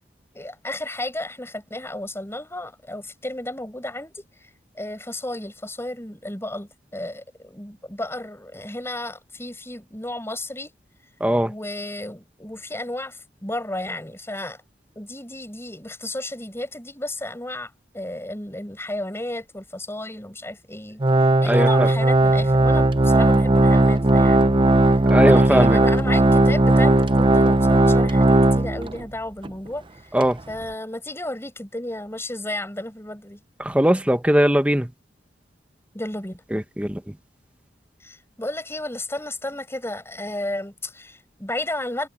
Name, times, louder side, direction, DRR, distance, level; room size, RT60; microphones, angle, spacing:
voice 1, 0.3-4.2 4.7-10.7 11.4-14.6 14.9-21.0 21.4-24.6 25.2-29.8 30.5-33.4 35.9-36.4 38.0-42.1, left 1 dB, 15° left, 6.3 m, -33 dB
voice 2, 11.2-11.5 21.4-21.9 25.1-25.8 30.1-30.4 33.6-34.9 36.5-37.0, equal, 5° right, 1.3 m, -20 dB
Organ, 21.0-29.0 29.4-29.5 30.2-30.3, right 2 dB, 30° right, 0.8 m, -17 dB
head